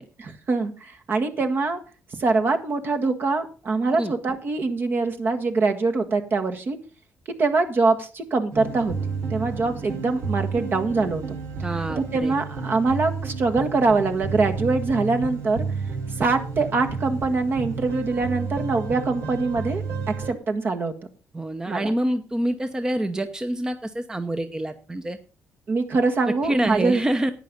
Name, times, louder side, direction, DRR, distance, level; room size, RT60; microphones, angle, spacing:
voice 1, 0.2-1.8 2.1-6.8 7.4-8.9 9.3-11.2 12.0-15.6 16.2-19.8 20.3-20.9 21.7-21.9 25.7-27.0, right 3 dB, 45° right, 6 dB, 1.7 m, -23 dB
sound 1, 8.5-20.3, right 4 dB, 85° right, 3.0 m, -31 dB
voice 2, 11.6-12.3 21.3-25.2 26.4-27.3, right 1 dB, 15° right, 9 dB, 0.8 m, -26 dB
11.0 x 9.1 x 5.3 m, 0.35 s
cardioid pair, 105°, 5 cm